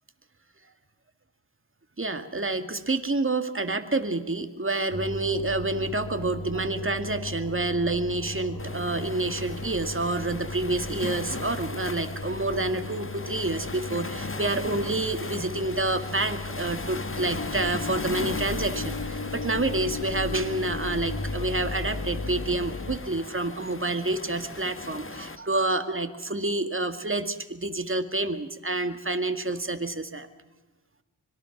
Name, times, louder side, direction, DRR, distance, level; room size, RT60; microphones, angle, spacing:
voice 1, 2.0-30.3, right 2 dB, 25° right, 8 dB, 2.2 m, -28 dB
Engine, 4.9-23.0, left 3 dB, 45° left, 2.1 m, -36 dB
Waves surf, 8.6-25.4, left 3 dB, 25° left, 1.8 m, -38 dB
25.0 x 22.0 x 6.1 m, 1.1 s
cardioid pair, 60°, 46 cm